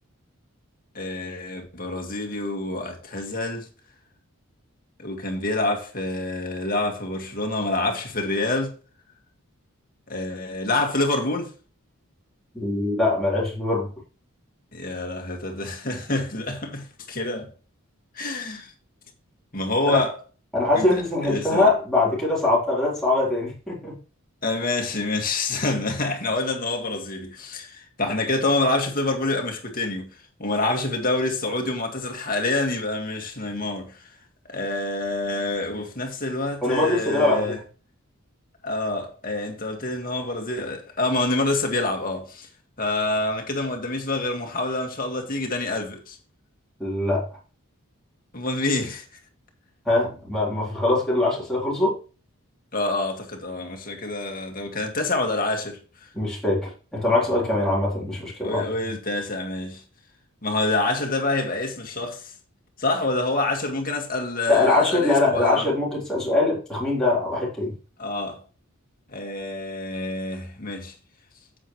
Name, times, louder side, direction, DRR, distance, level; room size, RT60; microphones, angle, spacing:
voice 1, 0.9-3.7 5.0-8.7 10.1-11.5 14.7-17.5 18.2-18.7 19.5-20.1 20.7-20.9 21.2-21.7 24.4-30.1 30.4-34.1 34.5-37.6 38.6-42.5 42.8-46.2 48.3-49.1 52.7-55.8 58.4-59.8 60.4-62.3 62.8-65.7 68.0-68.4 69.1-70.9, left 2 dB, 40° left, 2.0 m, -27 dB
voice 2, 12.5-13.9 19.9-20.0 20.5-23.9 36.6-37.5 46.8-47.3 49.9-52.0 56.1-58.6 64.5-67.7, left 2 dB, 5° left, 3.9 m, -22 dB
9.9 x 7.9 x 3.2 m
head